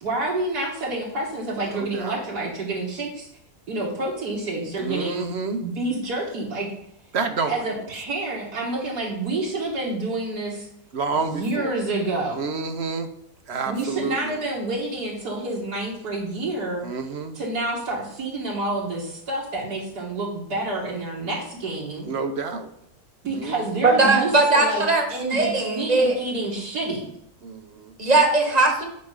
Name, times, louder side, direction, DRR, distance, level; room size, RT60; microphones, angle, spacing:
voice 1, 0.0-3.3 3.7-5.3 5.6-6.7 7.5-10.7 11.2-12.4 13.7-16.8 17.3-22.1 23.2-24.8 25.1-27.1, right 2 dB, 80° right, -5 dB, 2.1 m, -28 dB
voice 2, 1.7-2.2 4.8-5.6 7.1-7.5 10.9-11.8 12.4-13.1 13.5-14.4 16.8-17.3 22.1-22.7 23.3-23.6 27.4-27.9, right 4 dB, 50° right, 7 dB, 0.9 m, -29 dB
voice 3, 23.8-25.0 25.3-26.1 28.0-28.9, right 2 dB, 25° right, 3 dB, 1.3 m, -19 dB
9.5 x 5.2 x 4.9 m, 0.74 s
omnidirectional pair, 1.7 m